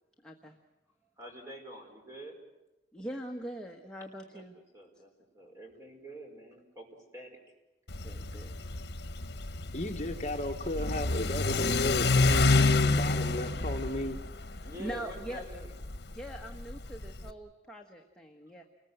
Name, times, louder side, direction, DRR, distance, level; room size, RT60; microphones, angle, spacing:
voice 1, 0.2-0.5 2.9-4.6 8.0-8.5 14.6-15.4 16.1-18.6, right 1 dB, 5° left, 0 dB, 1.3 m, -42 dB
voice 2, 1.2-2.4 4.3-4.5 4.7-7.4 8.3-8.4 10.3-10.4 14.6-15.7, equal, 15° right, 2 dB, 4.9 m, -47 dB
Car / Accelerating revving vroom, 7.9-17.3, left 3 dB, 70° left, 1.2 m, -29 dB
voice 3, 9.7-14.2, left 1 dB, 40° left, 4 dB, 1.4 m, -34 dB
29.0 x 21.0 x 8.0 m, 0.97 s
head